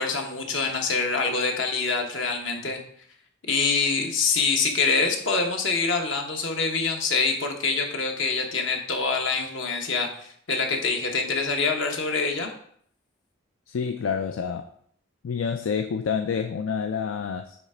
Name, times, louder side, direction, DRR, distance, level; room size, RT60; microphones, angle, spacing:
voice 1, 0.0-2.8 3.5-12.5, left 4 dB, 70° left, 3 dB, 1.1 m, -25 dB
voice 2, 13.7-14.7 15.2-17.6, left 6 dB, 90° left, 7 dB, 0.4 m, -28 dB
7.0 x 3.3 x 4.9 m, 0.63 s
head